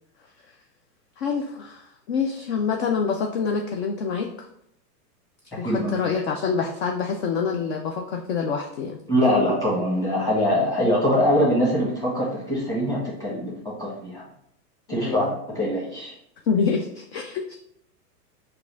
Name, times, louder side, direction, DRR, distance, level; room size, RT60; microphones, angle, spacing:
voice 1, 1.2-4.5 5.5-9.0 15.0-15.3 16.5-17.5, left 5 dB, 45° left, 2 dB, 0.4 m, -26 dB
voice 2, 5.5-6.0 9.1-14.2 14.9-16.1, equal, 5° left, -6 dB, 1.4 m, -23 dB
4.7 x 2.5 x 3.4 m, 0.73 s
hypercardioid pair, 140°, 48 cm